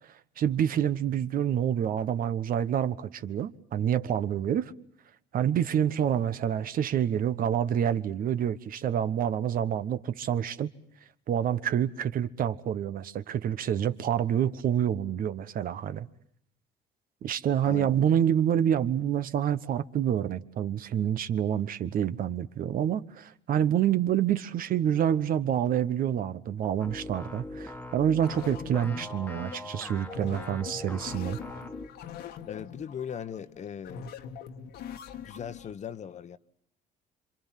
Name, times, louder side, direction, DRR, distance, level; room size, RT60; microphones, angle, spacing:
voice 1, 0.0-4.7 5.3-10.7 11.3-16.1 17.2-31.4, right 9 dB, 60° right, 1.2 m, -27 dB
sound 1, 26.8-31.9, left 1 dB, 10° left, 1.6 m, -41 dB
sound 2, 28.2-35.7, left 8 dB, 75° left, 1.8 m, -43 dB
voice 2, 32.5-34.1 35.1-36.4, left 8 dB, 45° left, 1.2 m, -39 dB
27.5 x 25.5 x 7.5 m
cardioid pair, 110°, 17 cm